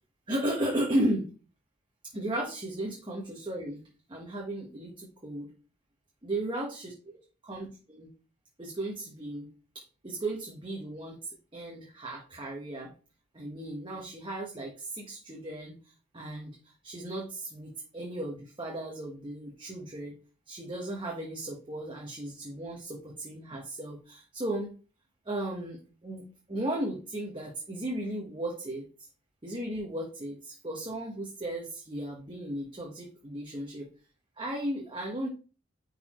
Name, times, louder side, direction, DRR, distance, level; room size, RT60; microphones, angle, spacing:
voice 1, 0.3-1.3 2.1-3.8 4.1-5.5 6.2-6.9 7.4-8.1 8.6-9.5 10.0-12.9 13.3-15.7 16.1-16.5 16.8-20.1 20.5-24.7 25.3-26.2 26.5-28.9 29.4-33.9 34.4-35.3, right 1 dB, 25° right, -1 dB, 1.3 m, -35 dB
10.5 x 4.1 x 3.1 m, 0.36 s
head